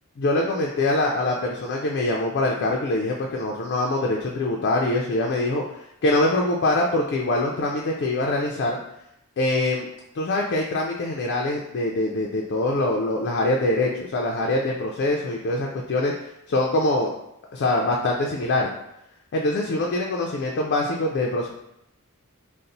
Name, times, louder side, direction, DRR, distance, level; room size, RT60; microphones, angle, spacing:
voice 1, 0.2-8.8 9.4-9.9 10.1-16.1 16.5-17.1 17.5-18.7 19.3-21.5, left 2 dB, 50° left, -1 dB, 0.4 m, -24 dB
4.0 x 2.0 x 2.6 m, 0.81 s
head